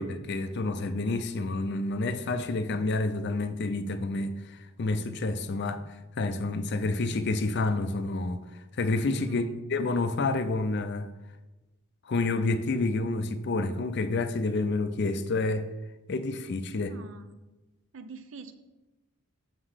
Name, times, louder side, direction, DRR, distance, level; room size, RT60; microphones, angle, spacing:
voice 1, 0.0-8.4 8.8-11.1 12.1-15.7 16.1-16.9, left 3 dB, 50° left, 0.5 m, -29 dB
voice 2, 9.3-9.7 16.7-17.3 17.9-18.5, right 3 dB, 60° right, 0.6 m, -45 dB
7.2 x 3.9 x 6.4 m
head